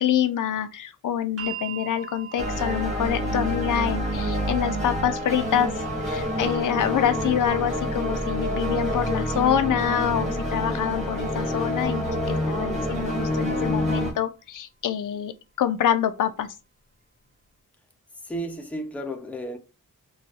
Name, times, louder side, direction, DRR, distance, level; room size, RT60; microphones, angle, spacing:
voice 1, 0.0-15.3 15.6-16.5, left 9 dB, 70° left, 0.5 m, -26 dB
sound 1, 1.4-13.5 14.5-14.6, right 8 dB, 45° right, 1.6 m, -45 dB
sound 2, 2.4-14.1, equal, 20° right, 1.3 m, -27 dB
voice 2, 18.2-19.6, right 1 dB, 5° left, 0.5 m, -33 dB
4.1 x 2.3 x 2.4 m
wide cardioid pair, 145°, 32 cm